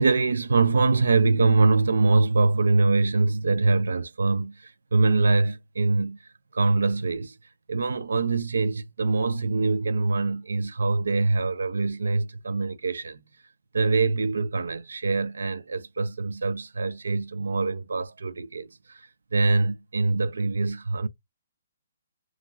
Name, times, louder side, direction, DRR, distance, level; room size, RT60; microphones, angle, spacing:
voice 1, 0.0-6.2 6.5-7.3 7.7-13.2 13.7-21.1, right 3 dB, 70° right, 0.3 m, -24 dB
2.4 x 2.2 x 3.0 m
figure-of-eight pair, 130°, 0 cm